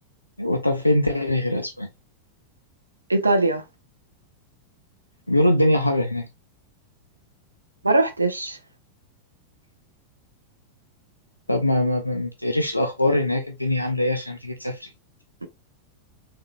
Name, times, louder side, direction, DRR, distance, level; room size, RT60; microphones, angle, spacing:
voice 1, 0.4-1.9 5.3-6.3 11.5-14.9, left 1 dB, 85° left, 0.4 m, -22 dB
voice 2, 3.1-3.6 7.8-8.6, right 2 dB, 80° right, 0.6 m, -21 dB
3.8 x 2.8 x 2.5 m
figure-of-eight pair, 90°, 0 cm